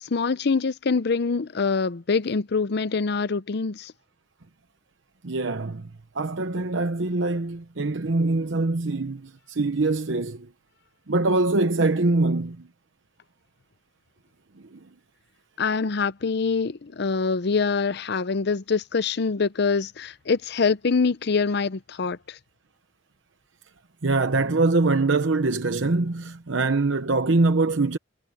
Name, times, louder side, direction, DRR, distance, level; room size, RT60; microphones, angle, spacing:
voice 1, 0.0-3.9 15.6-22.4, left 4 dB, 60° left, 0.6 m, -25 dB
voice 2, 5.2-5.9 6.1-10.5 11.1-12.7 14.7-14.8 24.0-28.0, right 3 dB, 75° right, 0.9 m, -23 dB
head